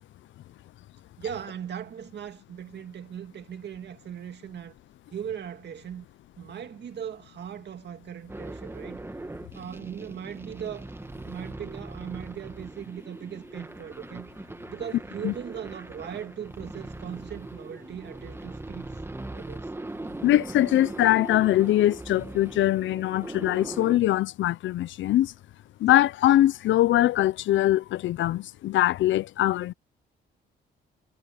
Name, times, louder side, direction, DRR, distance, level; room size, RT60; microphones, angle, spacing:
voice 1, 1.2-4.8 5.1-6.1 6.4-9.0 9.5-14.3 14.7-18.9 19.3-19.7, right 9 dB, 60° right, 2.1 m, -39 dB
sound 1, 8.3-24.0, right 2 dB, 10° right, 1.6 m, -40 dB
voice 2, 20.2-25.3 25.8-29.7, left 14 dB, 75° left, 0.6 m, -22 dB
cardioid pair, 90°, 20 cm